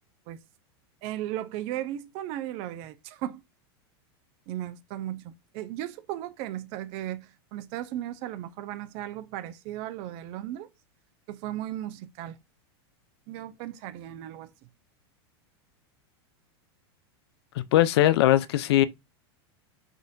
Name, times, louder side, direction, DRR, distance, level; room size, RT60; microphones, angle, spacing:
voice 1, 1.0-3.4 4.5-10.7 11.3-12.4 13.3-14.5, right 13 dB, 45° right, 0.4 m, -36 dB
voice 2, 17.7-18.8, left 14 dB, 70° left, 0.4 m, -20 dB
3.6 x 2.6 x 2.2 m
supercardioid pair, 130°, 14 cm